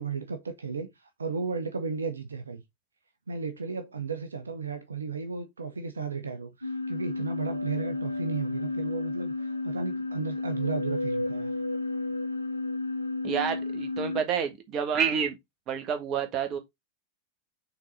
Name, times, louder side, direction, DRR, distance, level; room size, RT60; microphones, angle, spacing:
voice 1, 0.0-2.6 3.3-11.5, right 5 dB, 75° right, 0.7 m, -34 dB
sound 1, 6.6-14.2, left 2 dB, 90° left, 0.7 m, -32 dB
voice 2, 13.2-15.4 15.7-16.6, right 7 dB, 35° right, 1.6 m, -29 dB
5.9 x 4.0 x 4.2 m
figure-of-eight pair, 90°, 0 cm